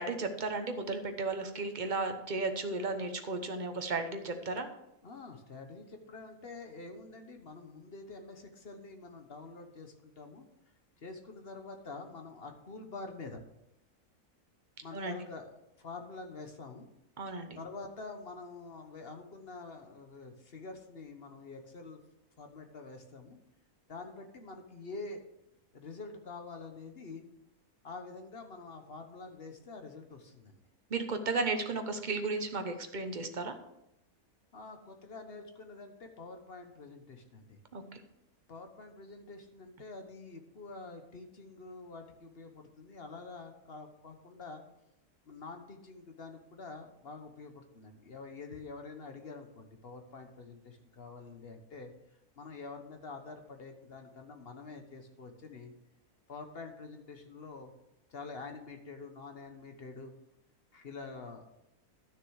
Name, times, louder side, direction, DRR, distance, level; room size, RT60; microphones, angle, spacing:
voice 1, 0.0-4.7 14.9-15.1 17.2-17.6 30.9-33.6 37.7-37.8, right 3 dB, 35° right, 6 dB, 1.0 m, -34 dB
voice 2, 5.0-10.5 11.0-13.4 14.8-15.5 15.8-16.9 17.5-22.0 22.4-23.4 23.9-25.2 25.7-27.2 27.8-30.6 34.5-37.6 38.5-44.6 45.3-51.9 52.4-55.7 56.3-57.7 58.1-60.1 60.7-61.5, left 3 dB, 45° left, 5 dB, 1.2 m, -47 dB
12.0 x 6.6 x 4.8 m, 0.85 s
omnidirectional pair, 1.6 m